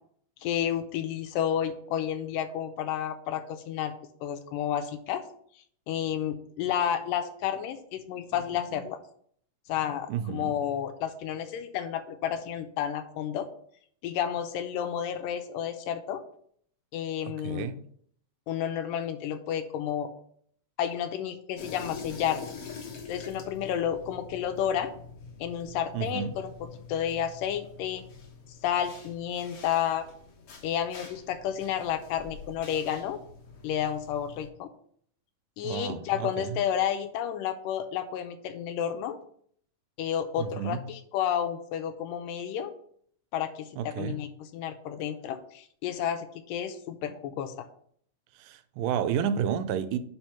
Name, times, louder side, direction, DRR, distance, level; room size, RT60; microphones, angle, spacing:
voice 1, 0.4-3.9 4.2-5.2 5.9-9.0 9.7-13.5 14.0-16.2 16.9-17.7 18.5-20.1 20.8-22.5 23.1-24.9 25.4-28.0 28.6-30.1 30.6-33.2 33.6-34.7 35.6-39.2 40.0-42.7 43.3-47.7, left 9 dB, 85° left, 2.2 m, -31 dB
voice 2, 10.1-10.5 17.3-17.8 25.9-26.4 35.6-36.6 40.4-40.8 43.8-44.2 48.4-50.0, right 8 dB, 90° right, 2.3 m, -31 dB
sound 1, 21.6-34.5, left 5 dB, 60° left, 1.8 m, -46 dB
5.4 x 4.4 x 5.6 m
omnidirectional pair, 3.8 m